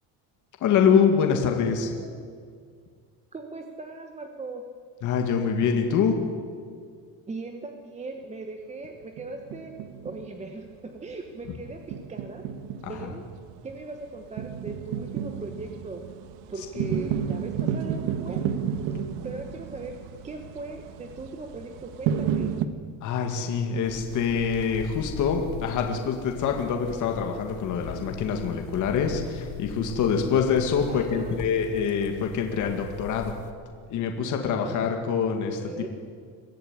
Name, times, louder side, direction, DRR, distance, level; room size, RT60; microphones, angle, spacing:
voice 1, 0.6-1.9 5.0-6.3 12.8-13.1 16.8-16.9 23.0-33.4 33.9-35.6, left 6 dB, 45° left, 4 dB, 2.1 m, -25 dB
voice 2, 3.3-4.6 7.3-9.7 10.0-12.4 12.9-13.2 13.6-16.0 16.5-18.4 19.0-20.0 20.2-22.5 30.9-31.3 34.6-34.8 35.6-35.9, right 3 dB, 15° right, 4 dB, 1.1 m, -39 dB
sound 1, 9.2-10.6 11.0-11.1 11.9-22.7, right 8 dB, 85° right, 1.6 m, -32 dB
sound 2, 23.8-33.5, left 8 dB, 90° left, 2.3 m, -40 dB
23.0 x 15.5 x 9.7 m, 2.1 s
cardioid pair, 175°, 42 cm